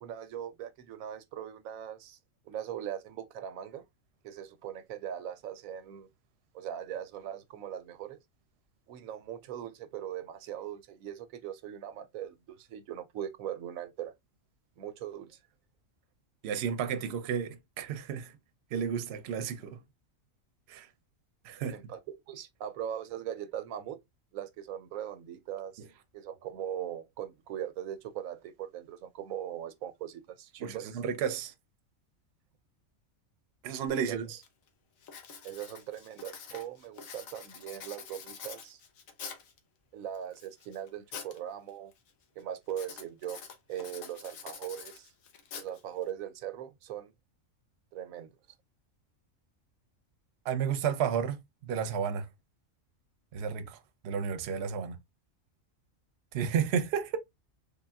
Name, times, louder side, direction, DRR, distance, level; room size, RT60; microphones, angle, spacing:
voice 1, 0.0-2.2 2.5-3.8 4.2-6.1 6.5-8.2 8.9-14.1 14.8-15.4 21.7-24.0 24.3-25.8 26.1-31.0 34.0-34.2 35.4-38.8 39.9-41.9 42.4-43.4 43.7-45.1 45.5-47.1 47.9-48.3, right 10 dB, 90° right, 1.0 m, -40 dB
voice 2, 16.4-18.3 18.7-19.8 20.7-20.9 21.4-21.8 30.6-31.5 33.6-34.4 50.4-52.3 53.3-55.0 56.3-57.2, right 7 dB, 60° right, 0.8 m, -32 dB
Writing, 33.9-34.0 34.4-34.7 35.0-39.6 40.1-41.4 41.7-42.1 42.7-46.1, left 6 dB, 80° left, 1.3 m, -46 dB
3.9 x 3.3 x 2.3 m
omnidirectional pair, 1.4 m